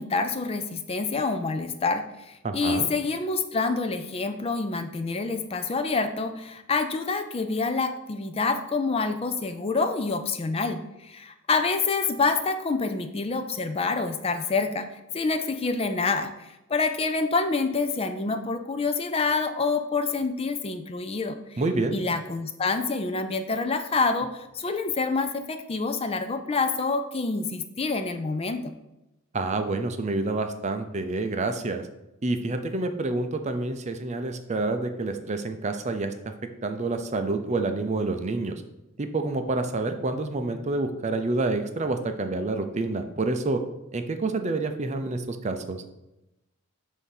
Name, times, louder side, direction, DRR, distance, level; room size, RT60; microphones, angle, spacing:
voice 1, 0.0-21.6 21.9-28.7, left 4 dB, 25° left, 8 dB, 0.4 m, -27 dB
voice 2, 2.4-2.9 21.6-22.0 29.3-31.9 32.2-36.3 36.6-38.6 39.0-43.6 43.9-45.8, right 2 dB, 35° right, 7 dB, 0.5 m, -28 dB
8.0 x 2.8 x 5.7 m, 0.93 s
head